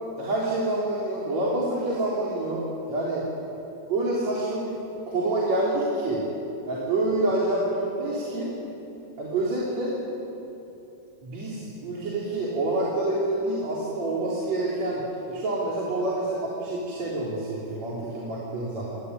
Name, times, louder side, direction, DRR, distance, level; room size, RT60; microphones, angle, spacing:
voice 1, 0.2-3.3 3.9-4.8 5.1-6.3 6.7-8.5 9.2-10.0 11.2-19.0, right 2 dB, 55° right, -6 dB, 4.9 m, -27 dB
27.0 x 20.0 x 9.8 m, 3.0 s
omnidirectional pair, 3.7 m